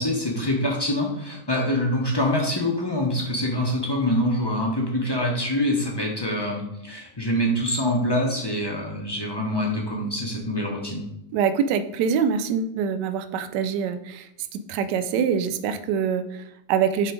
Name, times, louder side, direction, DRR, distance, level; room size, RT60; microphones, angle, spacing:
voice 1, 0.0-11.1, left 1 dB, 25° left, -1 dB, 0.6 m, -25 dB
voice 2, 11.3-17.1, right 7 dB, 75° right, 11 dB, 1.1 m, -25 dB
7.5 x 3.5 x 5.1 m, 0.84 s
omnidirectional pair, 2.2 m